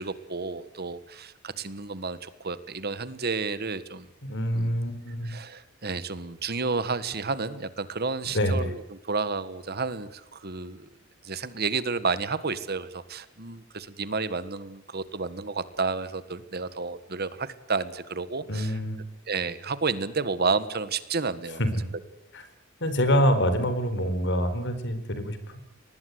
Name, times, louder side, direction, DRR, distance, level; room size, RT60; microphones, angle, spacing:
voice 1, 0.0-4.1 4.5-4.8 5.2-10.9 11.2-18.8 19.3-21.6, right 4 dB, 50° right, 14 dB, 1.6 m, -31 dB
voice 2, 4.2-5.3 8.3-8.7 18.5-19.0 21.6-21.7 22.3-22.4 22.8-25.6, equal, 60° left, 11 dB, 4.3 m, -26 dB
23.5 x 19.5 x 8.3 m, 0.83 s
head